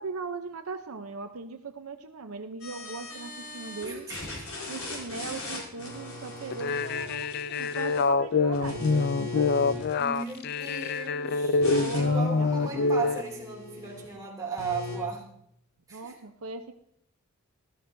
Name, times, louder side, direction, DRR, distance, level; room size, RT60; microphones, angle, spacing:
voice 1, 0.0-4.1 4.7-9.9 11.8-13.0 15.9-16.7, right 4 dB, 75° right, 7 dB, 0.7 m, -39 dB
sound 1, 2.6-3.9 4.1-8.1 8.5-11.0 11.6-14.1 14.6-15.0, left 2 dB, 70° left, 5.0 m, -39 dB
voice 2, 3.8-4.5 10.0-11.6 11.9-15.2 15.9-16.1, right 4 dB, 15° right, -2 dB, 2.6 m, -36 dB
sound 2, 6.5-13.2, left 4 dB, 45° left, 0.3 m, -26 dB
13.5 x 13.0 x 2.7 m, 0.73 s
head